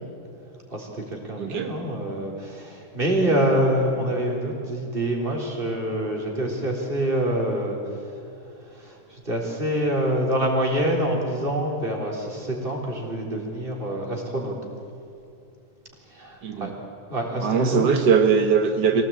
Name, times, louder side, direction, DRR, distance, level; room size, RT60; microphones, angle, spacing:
voice 1, 0.7-7.8 8.8-14.5 16.1-16.7 17.1-17.8 18.9-19.0, right 1 dB, 30° right, -1 dB, 4.1 m, -26 dB
voice 2, 1.4-1.7 16.4-16.7 17.4-19.0, right 6 dB, 80° right, 5 dB, 1.7 m, -20 dB
25.0 x 17.5 x 8.9 m, 2.6 s
omnidirectional pair, 1.8 m